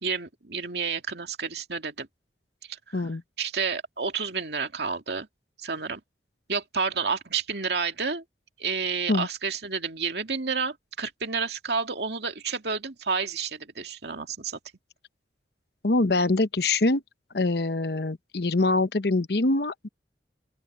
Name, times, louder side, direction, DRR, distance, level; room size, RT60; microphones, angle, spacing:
voice 1, 0.0-2.1 2.7-3.0 3.4-5.3 5.6-6.0 6.5-8.2 8.6-14.6, right 5 dB, 70° right, 2.3 m, -30 dB
voice 2, 15.8-17.0 17.3-19.9, left 2 dB, 65° left, 0.9 m, -24 dB
open air
head